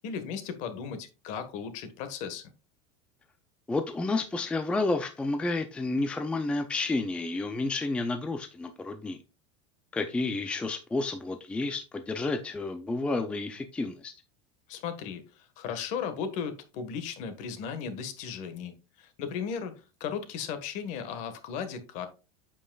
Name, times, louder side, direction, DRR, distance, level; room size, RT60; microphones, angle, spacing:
voice 1, 0.0-2.5 14.7-22.1, left 7 dB, 45° left, 1.4 m, -36 dB
voice 2, 3.7-9.2 9.9-14.1, left 3 dB, 5° left, 0.4 m, -30 dB
8.4 x 7.6 x 2.3 m
cardioid pair, 175°, 17 cm